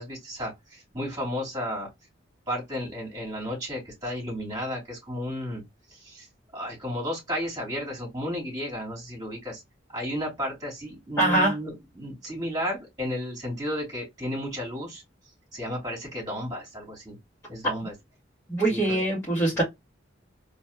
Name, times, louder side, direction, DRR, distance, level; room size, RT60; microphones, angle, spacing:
voice 1, 0.0-1.9 2.5-5.6 5.9-6.3 6.5-9.6 9.9-15.0 15.5-17.2 17.5-17.9 18.7-19.0 19.5-19.6, equal, 20° right, 2.9 m, -33 dB
voice 2, 11.2-11.6 18.5-19.6, right 2 dB, 15° left, 2.5 m, -23 dB
4.1 x 3.2 x 2.4 m
head